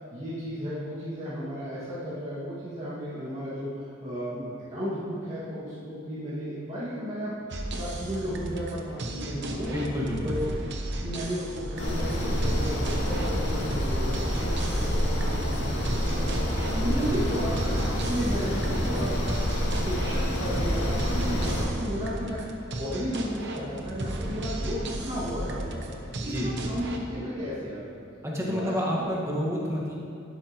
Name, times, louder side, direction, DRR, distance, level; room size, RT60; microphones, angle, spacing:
voice 1, 0.1-7.4 7.7-9.8 10.2-10.5 11.0-16.5 16.8-19.3 19.8-25.9 26.2-28.0 28.4-28.7 29.0-29.1, equal, 30° right, -13 dB, 2.2 m, -34 dB
sound 1, 7.5-27.0, right 1 dB, 55° right, 0.9 m, -35 dB
voice 2, 9.6-10.3 16.7-17.1 26.2-26.5 28.2-29.9, equal, 15° right, -4 dB, 1.7 m, -30 dB
sound 2, 11.8-21.6, equal, 60° left, 2.1 m, -28 dB
12.0 x 11.0 x 3.1 m, 2.4 s
head